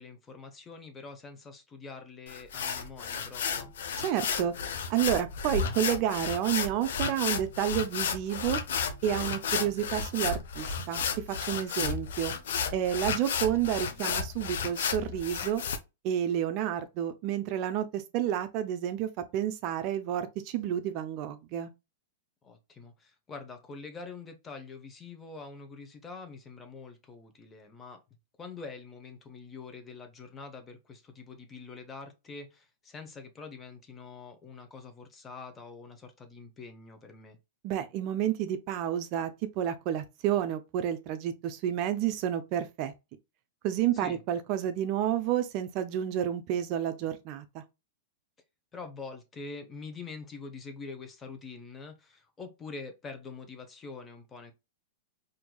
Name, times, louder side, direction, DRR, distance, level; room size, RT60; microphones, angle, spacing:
voice 1, 0.0-3.7 11.8-12.0 12.9-13.2 22.4-28.0 28.4-37.4 43.9-44.2 48.7-54.5, left 4 dB, 15° left, 0.7 m, -45 dB
sound 1, 2.3-15.8, left 6 dB, 75° left, 0.6 m, -33 dB
voice 2, 4.0-4.5 4.9-8.6 9.0-12.3 12.7-15.6 16.0-21.7 37.6-39.3 39.6-42.9 43.6-47.6, right 10 dB, 40° right, 0.4 m, -30 dB
4.4 x 2.6 x 2.2 m
hypercardioid pair, 145°, 0 cm